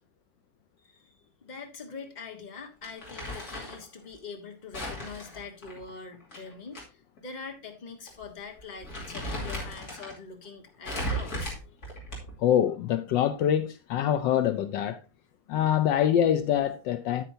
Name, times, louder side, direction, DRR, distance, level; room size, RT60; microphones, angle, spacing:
voice 1, 0.8-1.1 1.4-11.8, left 4 dB, 25° left, 1.3 m, -44 dB
Crumpling crinkling, 2.8-3.8 4.7-6.8 7.2-7.3 8.1-8.2 8.6-10.2 10.8-12.5, equal, 50° left, 3.0 m, -36 dB
voice 2, 12.4-15.0 15.5-17.2, left 10 dB, 75° left, 1.2 m, -25 dB
9.1 x 9.0 x 2.7 m
omnidirectional pair, 2.1 m